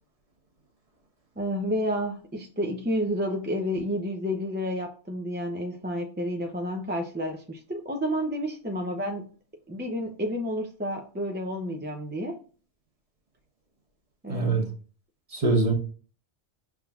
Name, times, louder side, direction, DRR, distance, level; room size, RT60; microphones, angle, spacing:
voice 1, 1.4-9.3 9.7-12.4 14.2-14.7, equal, 15° right, 3 dB, 0.4 m, -30 dB
voice 2, 14.3-14.6 15.3-15.7, right 3 dB, 35° right, 2 dB, 1.0 m, -23 dB
5.6 x 3.6 x 2.3 m, 0.38 s
omnidirectional pair, 1.2 m